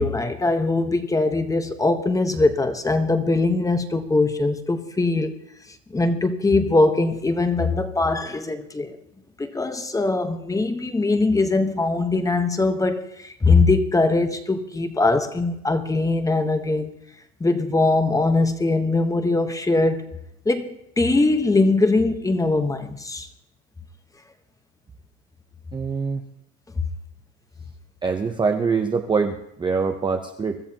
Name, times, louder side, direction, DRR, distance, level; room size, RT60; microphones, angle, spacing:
voice 1, 0.0-5.3 5.9-8.9 9.4-16.9 17.4-20.1 20.5-23.3, left 3 dB, 10° left, 1.1 m, -21 dB
voice 2, 25.7-26.2 28.0-30.6, right 5 dB, 10° right, 0.7 m, -24 dB
24.0 x 13.0 x 2.9 m
supercardioid pair, 130°, 39 cm